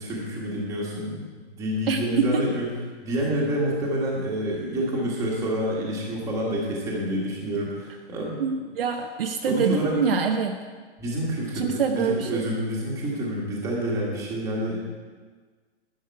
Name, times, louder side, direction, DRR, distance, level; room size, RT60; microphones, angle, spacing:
voice 1, 0.0-2.6 3.0-8.4 9.5-9.9 11.0-14.8, equal, 10° right, -4 dB, 1.6 m, -28 dB
voice 2, 1.9-2.4 8.4-10.5 11.5-12.4, right 6 dB, 50° right, 4 dB, 0.8 m, -25 dB
11.5 x 10.5 x 4.7 m, 1.5 s
hypercardioid pair, 175°, 36 cm